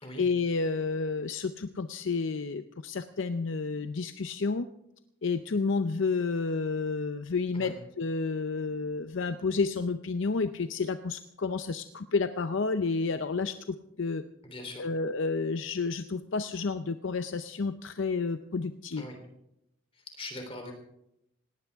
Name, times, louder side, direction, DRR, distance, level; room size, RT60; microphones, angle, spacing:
voice 1, 0.2-4.7 5.2-14.2 14.8-19.0, left 4 dB, 70° left, 10 dB, 0.6 m, -30 dB
voice 2, 14.4-14.9 19.0-19.2 19.9-20.7, left 1 dB, 25° left, 4 dB, 3.4 m, -41 dB
18.5 x 18.0 x 3.5 m, 0.80 s
head